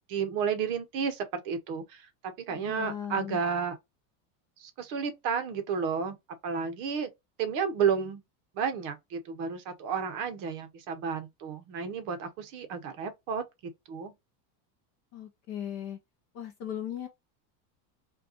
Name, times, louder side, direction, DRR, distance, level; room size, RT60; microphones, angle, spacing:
voice 1, 0.1-2.0 2.5-3.8 4.6-6.2 6.4-7.1 7.4-8.2 8.5-13.4 13.9-14.1, right 6 dB, 40° right, 0.8 m, -31 dB
voice 2, 2.5-3.4 15.1-16.0 16.3-17.1, left 10 dB, 35° left, 0.4 m, -37 dB
5.1 x 2.3 x 2.7 m
cardioid pair, 175°, 50 cm